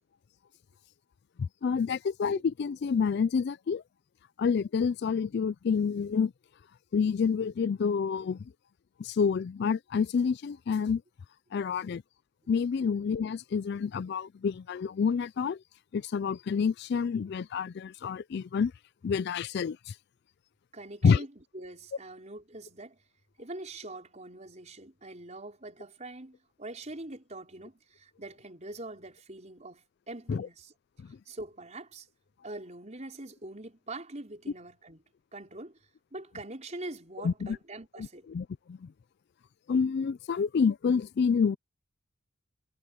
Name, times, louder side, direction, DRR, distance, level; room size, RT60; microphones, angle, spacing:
voice 1, 1.4-3.8 4.4-6.3 6.9-8.4 9.0-11.0 11.5-12.0 12.5-15.6 15.9-18.7 19.0-19.9 21.0-21.3 30.3-30.5 31.0-31.2 37.2-37.6 38.0-38.9 39.7-41.6, left 6 dB, 50° left, 0.3 m, -28 dB
voice 2, 20.7-23.0 23.4-30.7 31.3-32.1 32.4-35.0 35.3-35.8 36.1-38.3, right 2 dB, 35° right, 5.0 m, -44 dB
head